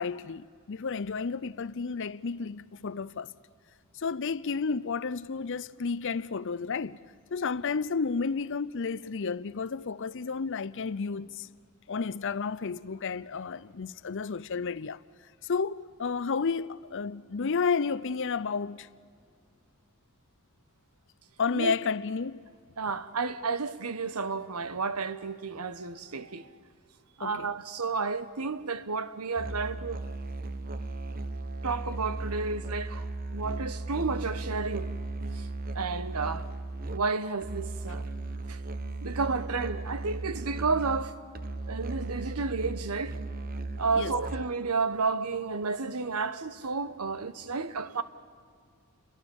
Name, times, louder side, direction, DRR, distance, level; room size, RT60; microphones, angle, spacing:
voice 1, 0.0-3.3 4.0-7.0 7.3-11.5 11.9-15.0 15.4-18.9 21.4-22.5 27.2-27.5 44.0-44.2, left 5 dB, 55° left, 0.6 m, -31 dB
voice 2, 22.8-26.5 27.2-30.0 31.6-33.0 33.3-34.9 35.4-35.5 35.7-36.5 36.9-38.1 38.5-38.6 39.0-41.1 41.7-43.2 43.8-48.0, right 4 dB, 85° right, 1.1 m, -31 dB
Musical instrument, 29.4-44.7, right 2 dB, 40° right, 0.9 m, -36 dB
29.0 x 22.5 x 7.1 m
head